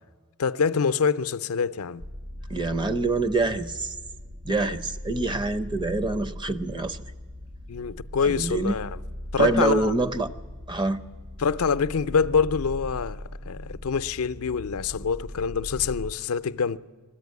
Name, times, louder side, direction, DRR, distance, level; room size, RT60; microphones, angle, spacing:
voice 1, 0.4-2.0 7.7-9.0 9.3-9.9 11.4-16.8, left 6 dB, 75° left, 0.5 m, -25 dB
sound 1, 2.0-16.1, left 1 dB, 50° right, 1.3 m, -39 dB
voice 2, 2.5-4.0 4.4-7.0 8.3-8.8 9.4-10.3 10.7-11.0, right 2 dB, 20° right, 0.6 m, -25 dB
20.5 x 14.5 x 9.4 m
head